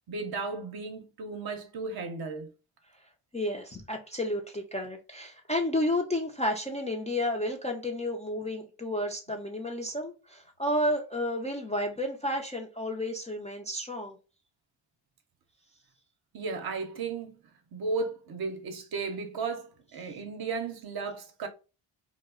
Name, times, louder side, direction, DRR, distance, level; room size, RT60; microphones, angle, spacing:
voice 1, 0.1-2.5 16.3-17.3 17.7-21.5, right 4 dB, 50° right, 0.6 m, -35 dB
voice 2, 3.3-14.2, left 1 dB, 15° left, 0.3 m, -31 dB
2.3 x 2.0 x 3.5 m
cardioid pair, 85°, 48 cm